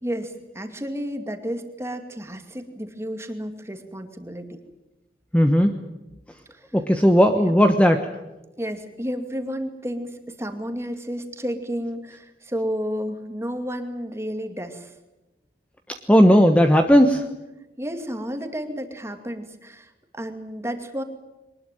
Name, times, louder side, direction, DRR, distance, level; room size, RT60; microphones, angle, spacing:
voice 1, 0.0-4.6 6.5-6.6 7.4-7.5 8.6-14.9 17.8-21.0, equal, 15° right, 6 dB, 2.4 m, -31 dB
voice 2, 5.3-5.7 6.7-8.0 16.1-17.2, equal, 5° left, 6 dB, 1.2 m, -16 dB
23.5 x 20.0 x 9.2 m, 1.0 s
head